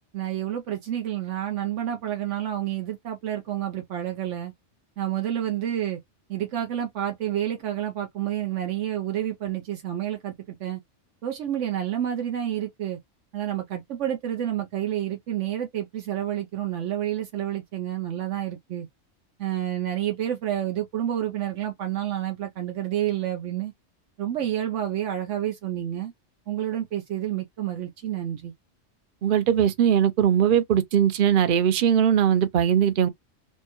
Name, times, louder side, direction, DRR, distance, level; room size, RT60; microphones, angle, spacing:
voice 1, 0.1-4.5 5.0-6.0 6.3-10.8 11.2-13.0 13.3-18.9 19.4-23.7 24.2-26.1 26.5-28.5, right 11 dB, 80° right, 1.0 m, -29 dB
voice 2, 29.2-33.1, right 9 dB, 55° right, 0.7 m, -20 dB
4.4 x 2.2 x 2.9 m
omnidirectional pair, 1.2 m